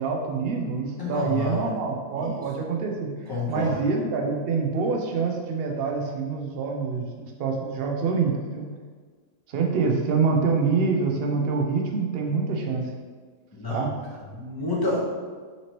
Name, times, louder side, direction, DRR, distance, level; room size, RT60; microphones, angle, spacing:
voice 1, 0.0-3.1 3.5-8.7 9.5-12.8 13.7-13.9, right 4 dB, 70° right, 1 dB, 0.5 m, -26 dB
voice 2, 1.0-1.7 2.2-2.4 3.3-3.8 13.5-15.0, left 3 dB, 20° left, -5 dB, 0.7 m, -30 dB
5.7 x 3.0 x 2.9 m, 1.5 s
omnidirectional pair, 1.7 m